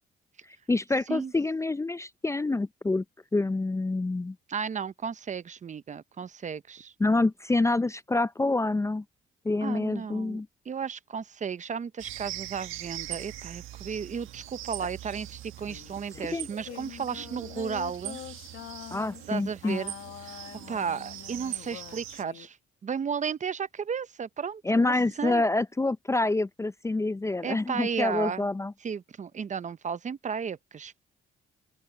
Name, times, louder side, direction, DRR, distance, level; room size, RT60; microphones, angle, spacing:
voice 1, 0.7-3.0 3.3-4.4 7.0-9.0 9.4-10.5 16.2-16.5 18.9-19.8 24.6-28.7, left 2 dB, 15° left, 0.5 m, -27 dB
voice 2, 4.5-6.9 9.6-18.2 19.3-19.9 20.2-22.6 22.8-25.4 27.4-28.5 28.8-31.1, right 6 dB, 35° right, 0.7 m, -34 dB
sound 1, 12.0-22.2, right 13 dB, 85° right, 1.5 m, -42 dB
sound 2, 15.6-19.3 19.6-22.5, left 13 dB, 85° left, 1.8 m, -44 dB
open air
cardioid pair, 90°, 20 cm